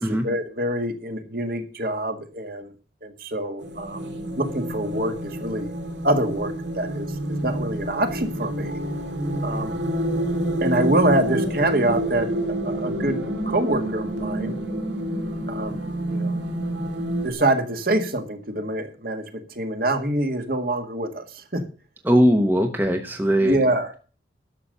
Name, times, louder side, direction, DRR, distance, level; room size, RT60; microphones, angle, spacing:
voice 1, 0.0-2.7 3.0-4.0 4.4-5.7 6.0-8.8 9.4-9.8 10.6-13.2 13.5-14.6 15.5-15.8 16.1-16.4 17.2-21.6 23.4-24.0, right 1 dB, 50° right, 6 dB, 1.8 m, -25 dB
sound 1, 3.6-17.3, right 1 dB, 70° right, 2.1 m, -28 dB
voice 2, 22.0-23.6, equal, 10° right, 5 dB, 0.9 m, -19 dB
11.5 x 6.9 x 6.7 m, 0.37 s
head